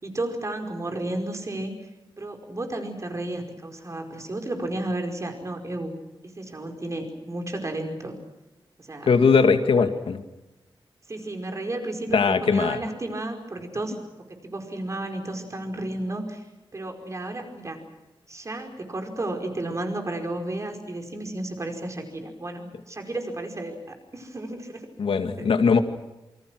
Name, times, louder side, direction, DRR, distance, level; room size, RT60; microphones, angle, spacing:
voice 1, 0.0-1.9 2.2-5.9 6.2-8.2 8.8-9.1 9.8-9.9 11.1-14.0 14.3-16.4 16.7-17.8 18.3-24.9 25.4-25.5, right 1 dB, 35° right, 4 dB, 5.0 m, -32 dB
voice 2, 9.0-10.2 12.1-12.8 25.0-25.8, left 5 dB, 90° left, 8 dB, 2.3 m, -20 dB
27.5 x 25.5 x 6.2 m, 1.1 s
wide cardioid pair, 140°, 9 cm